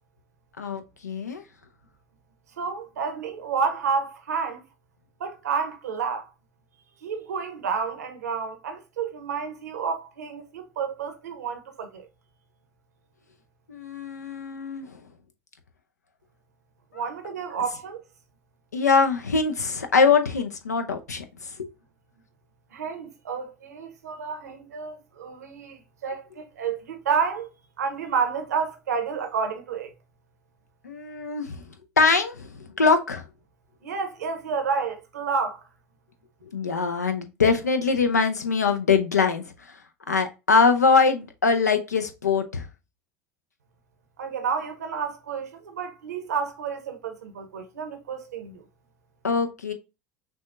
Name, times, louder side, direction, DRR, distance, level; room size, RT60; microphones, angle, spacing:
voice 1, 0.6-1.4 13.7-15.0 18.7-21.7 30.8-31.6 32.0-33.2 36.5-39.8 40.1-42.7 49.2-49.7, left 5 dB, 90° left, 0.6 m, -23 dB
voice 2, 2.6-4.6 5.2-6.3 7.0-12.1 16.9-18.0 22.7-27.5 27.8-29.9 33.8-35.6 44.2-48.6, right 5 dB, 80° right, 0.8 m, -30 dB
6.1 x 2.3 x 2.5 m
hypercardioid pair, 70°, 9 cm